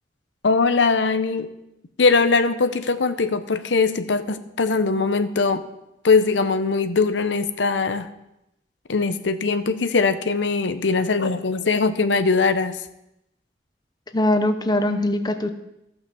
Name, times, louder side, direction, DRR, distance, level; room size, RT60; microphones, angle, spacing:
voice 1, 0.4-1.5 2.0-5.6 6.0-8.1 8.9-12.8, left 4 dB, 80° left, 11 dB, 0.7 m, -21 dB
voice 2, 14.1-15.5, left 1 dB, 25° left, 8 dB, 0.7 m, -21 dB
14.0 x 5.8 x 6.8 m, 0.87 s
head